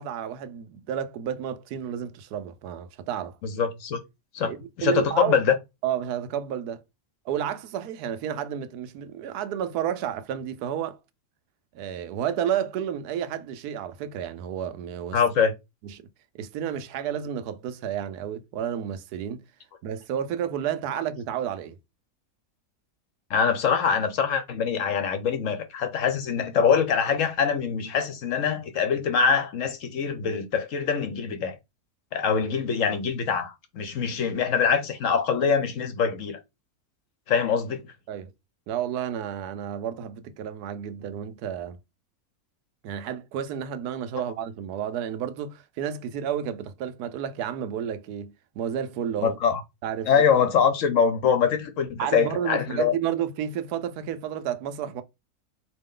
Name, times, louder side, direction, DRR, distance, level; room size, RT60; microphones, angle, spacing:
voice 1, 0.0-3.4 4.4-5.4 5.8-6.8 7.3-11.0 11.7-15.2 15.9-16.0 16.3-19.4 19.8-21.7 38.1-38.3 38.7-41.8 42.8-49.4 49.8-50.2 52.0-55.0, right 9 dB, 85° right, 1.2 m, -31 dB
voice 2, 3.4-4.0 4.3-5.5 15.1-15.5 23.3-31.6 32.1-36.4 37.3-37.9 49.2-49.6 50.1-52.9, left 6 dB, 60° left, 1.1 m, -24 dB
4.2 x 3.0 x 3.7 m
omnidirectional pair, 1.6 m